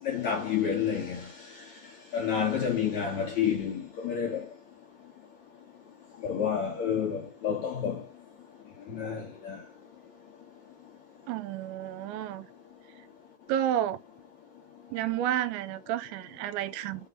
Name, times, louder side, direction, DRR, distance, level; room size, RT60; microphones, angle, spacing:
voice 1, 0.0-1.3 2.1-4.5 6.2-8.0 8.9-9.6, left 7 dB, 55° left, 2.1 m, -29 dB
voice 2, 11.3-12.5 13.5-14.0 14.9-17.1, right 11 dB, 85° right, 2.9 m, -31 dB
6.6 x 3.9 x 4.0 m
omnidirectional pair, 5.3 m